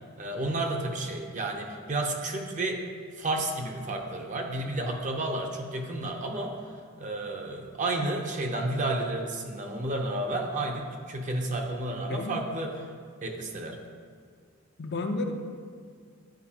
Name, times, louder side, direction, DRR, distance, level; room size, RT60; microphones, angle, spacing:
voice 1, 0.2-2.8 3.2-6.6 7.0-12.7 13.2-13.8, right 2 dB, 35° right, 2 dB, 0.7 m, -31 dB
voice 2, 12.1-12.6 14.8-15.3, left 2 dB, 50° left, 4 dB, 0.5 m, -33 dB
10.5 x 5.1 x 2.8 m, 2.1 s
head